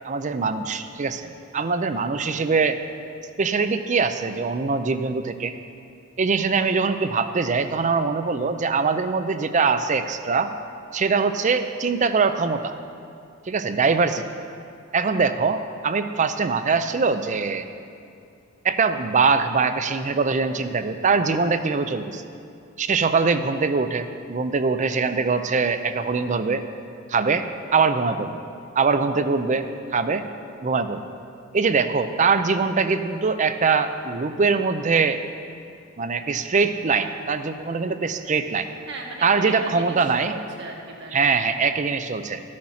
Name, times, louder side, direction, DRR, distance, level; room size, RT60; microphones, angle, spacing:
voice 1, 0.0-2.8 3.4-5.5 6.2-10.5 10.9-12.7 13.5-14.2 14.9-17.7 18.6-22.2 22.8-26.6 27.1-27.4 27.7-28.4 28.8-29.7 29.9-30.2 30.6-31.0 31.5-35.2 36.0-38.7 39.2-40.4 41.1-42.4, right 4 dB, 35° right, 10 dB, 0.5 m, -22 dB
voice 2, 38.9-41.7, right 3 dB, 60° right, -1 dB, 1.6 m, -38 dB
13.5 x 6.4 x 5.7 m, 2.5 s
head